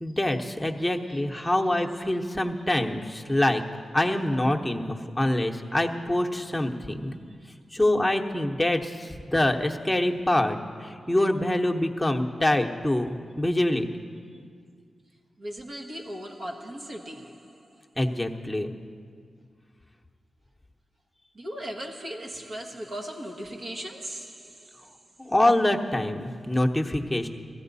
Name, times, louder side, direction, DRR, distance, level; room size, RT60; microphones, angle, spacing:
voice 1, 0.0-3.6 3.9-7.2 7.7-13.1 13.4-13.9 18.0-18.7 25.2-27.3, left 1 dB, 10° left, 1.0 m, -25 dB
voice 2, 0.8-1.8 2.3-2.7 3.3-3.4 7.5-7.6 15.4-17.9 21.3-24.9, equal, 60° right, 1.2 m, -39 dB
16.0 x 14.5 x 4.1 m
cardioid pair, 55°, 0 cm